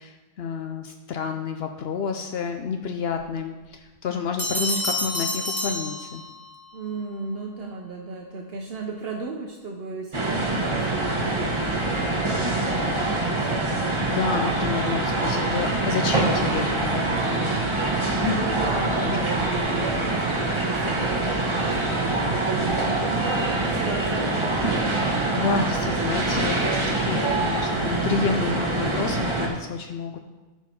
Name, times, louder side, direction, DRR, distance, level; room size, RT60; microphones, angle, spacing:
voice 1, 0.0-6.2 14.1-17.9 18.2-18.3 19.0-19.5 25.1-30.2, left 6 dB, 70° left, 5 dB, 0.8 m, -30 dB
Bell, 4.4-6.6, left 1 dB, 10° right, 2.1 m, -29 dB
voice 2, 6.7-13.7 18.1-24.9, right 4 dB, 65° right, 1 dB, 1.0 m, -35 dB
sound 1, 10.1-29.5, right 2 dB, 30° right, 1.2 m, -24 dB
14.0 x 4.7 x 4.2 m, 1.2 s
omnidirectional pair, 1.1 m